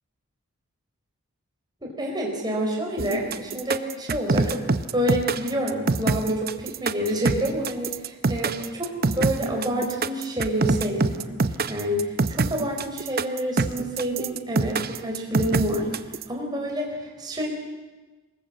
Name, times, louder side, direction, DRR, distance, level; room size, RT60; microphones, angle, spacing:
voice 1, 1.8-4.6 4.9-17.5, equal, 20° right, 0 dB, 4.6 m, -28 dB
sound 1, 3.0-16.2, right 3 dB, 45° right, 0.7 m, -24 dB
23.5 x 20.0 x 7.7 m, 1.2 s
head